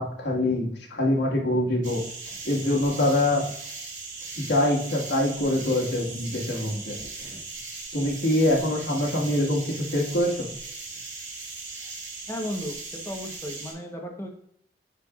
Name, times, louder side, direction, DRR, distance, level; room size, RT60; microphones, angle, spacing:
voice 1, 0.0-2.0 2.4-3.4 4.4-7.4 7.9-10.5, left 1 dB, 80° left, -2 dB, 1.7 m, -24 dB
sound 1, 1.8-13.7, right 3 dB, 85° right, 2.4 m, -38 dB
voice 2, 12.3-14.3, equal, 15° left, 2 dB, 1.0 m, -34 dB
9.0 x 4.5 x 2.4 m, 0.68 s
head